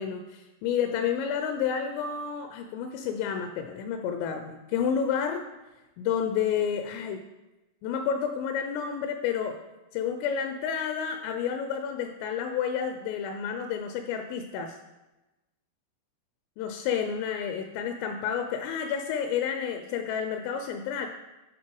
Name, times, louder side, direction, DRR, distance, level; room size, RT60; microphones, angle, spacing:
voice 1, 0.0-5.4 6.0-7.2 7.8-9.6 9.9-14.8 16.6-21.1, left 7 dB, 85° left, 6 dB, 3.1 m, -30 dB
10.0 x 4.3 x 4.6 m, 1.0 s
omnidirectional pair, 5.8 m